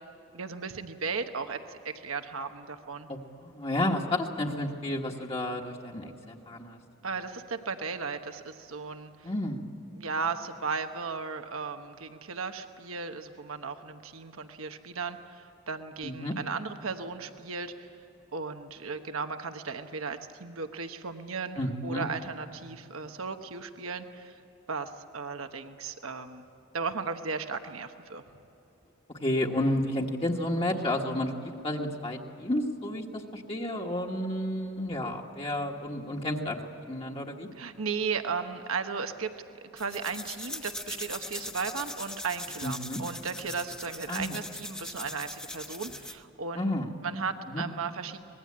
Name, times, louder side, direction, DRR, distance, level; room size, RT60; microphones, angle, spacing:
voice 1, 0.3-3.1 7.0-9.3 10.0-17.9 18.3-24.4 24.7-26.4 26.7-28.2 35.4-35.5 37.5-39.3 39.7-46.7 47.0-48.2, right 5 dB, 75° right, 7 dB, 1.1 m, -36 dB
voice 2, 3.1-6.8 9.2-9.6 16.0-16.3 21.6-22.0 29.2-36.6 36.9-37.5 42.6-43.0 44.1-44.4 46.5-46.9 47.5-47.6, left 1 dB, 25° left, -1 dB, 1.4 m, -31 dB
sound 1, 39.8-46.2, left 1 dB, 5° left, 1.1 m, -40 dB
25.0 x 20.5 x 8.7 m, 3.0 s
head